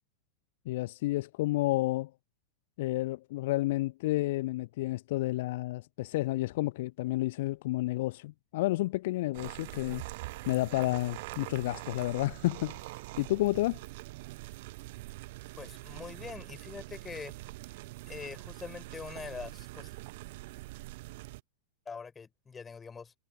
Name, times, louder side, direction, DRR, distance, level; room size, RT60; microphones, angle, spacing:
voice 1, 0.7-2.1 2.8-10.0 10.5-13.8, left 18 dB, 50° left, 0.9 m, -31 dB
sound 1, 9.3-21.4, right 20 dB, 50° right, 0.6 m, -44 dB
voice 2, 15.6-17.3 18.1-19.9 21.9-23.1, left 5 dB, 15° left, 4.4 m, -43 dB
figure-of-eight pair, 90°, 0 cm